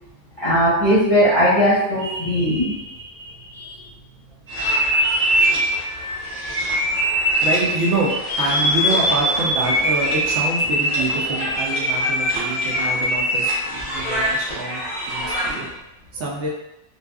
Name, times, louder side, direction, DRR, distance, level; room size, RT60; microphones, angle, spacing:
voice 1, 0.4-3.8 4.6-5.6, equal, 35° left, -9 dB, 0.7 m, -21 dB
sound 1, 4.5-15.7, equal, 40° right, 1.0 m, -22 dB
voice 2, 7.4-15.7 16.1-16.5, right 2 dB, 75° right, -3 dB, 0.9 m, -26 dB
2.5 x 2.3 x 2.2 m, 0.89 s
omnidirectional pair, 1.3 m